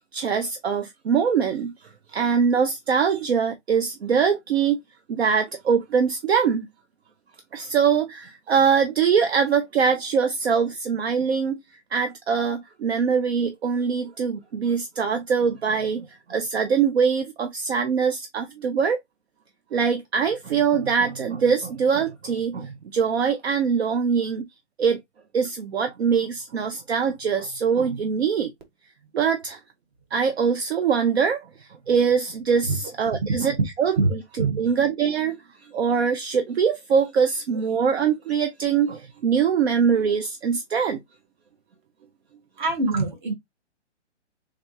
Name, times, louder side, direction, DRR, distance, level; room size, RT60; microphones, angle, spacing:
voice 1, 0.1-1.7 2.1-4.8 5.1-6.7 7.5-11.6 11.9-19.0 19.7-24.5 24.8-25.0 25.3-28.5 29.1-29.6 30.1-31.4 31.9-34.0 34.6-35.4 35.7-41.0, right 6 dB, 60° right, 0.7 m, -23 dB
voice 2, 34.0-34.6 42.6-43.3, right 3 dB, 40° right, 1.4 m, -24 dB
3.7 x 3.4 x 2.7 m
hypercardioid pair, 165°, 35 cm